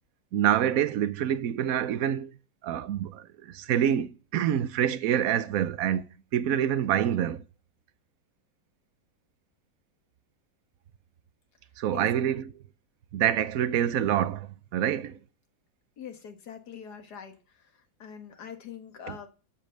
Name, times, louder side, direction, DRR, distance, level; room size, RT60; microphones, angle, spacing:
voice 1, 0.3-2.4 2.6-6.0 6.3-7.4 11.8-12.5 13.1-15.2 19.1-19.2, right 10 dB, 60° right, 1.0 m, -26 dB
voice 2, 16.0-17.7 18.0-19.3, left 8 dB, 60° left, 2.0 m, -43 dB
13.5 x 5.3 x 7.8 m
omnidirectional pair, 2.1 m